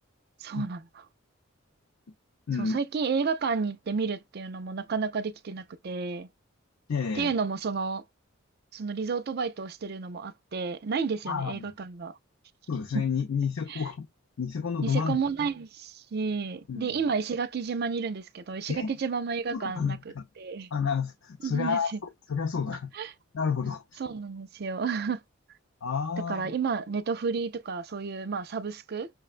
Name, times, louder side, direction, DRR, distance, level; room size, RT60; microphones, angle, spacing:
voice 1, 0.4-0.8 2.6-6.3 7.1-8.0 8.7-12.1 12.9-13.0 13.7-13.8 14.8-20.0 20.4-20.7 21.4-22.0 23.0-23.1 24.0-25.2 26.3-29.1, right 5 dB, 50° right, 0.4 m, -31 dB
voice 2, 2.5-2.8 6.9-7.3 11.3-11.7 12.7-14.1 14.4-15.2 16.7-16.9 18.7-18.9 19.5-20.2 20.7-21.9 22.3-22.9 23.3-24.0 25.8-26.5, left 6 dB, 75° left, 0.6 m, -30 dB
5.9 x 2.1 x 2.5 m
head